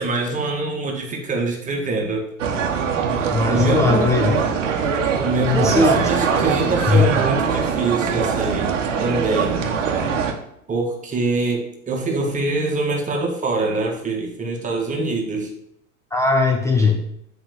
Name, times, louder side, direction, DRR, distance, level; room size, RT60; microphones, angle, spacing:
voice 1, 0.0-2.3 3.5-4.1 5.2-9.7 10.7-15.5 16.8-17.0, right 2 dB, 20° right, 0 dB, 1.5 m, -24 dB
sound 1, 2.4-10.3, right 6 dB, 65° right, 1.3 m, -22 dB
voice 2, 3.3-4.4 5.5-6.1 6.9-7.1 16.1-17.0, left 4 dB, 10° left, 3 dB, 0.4 m, -19 dB
9.0 x 3.7 x 6.8 m, 0.75 s
figure-of-eight pair, 95°, 41 cm